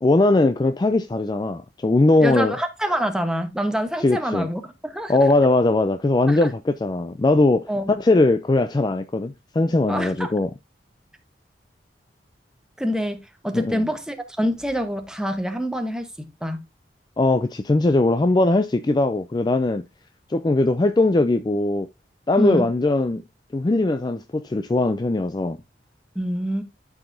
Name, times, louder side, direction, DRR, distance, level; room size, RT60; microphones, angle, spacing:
voice 1, 0.0-2.5 4.0-4.5 5.1-7.7 8.0-10.5 13.5-13.8 17.2-19.8 20.3-21.9 22.3-23.2 23.5-25.6, left 2 dB, 25° left, 0.3 m, -20 dB
voice 2, 2.2-5.1 6.3-6.5 7.7-8.0 9.9-10.3 12.8-16.6 22.4-22.7 26.1-26.6, equal, 5° right, 1.0 m, -26 dB
12.5 x 4.9 x 2.6 m
head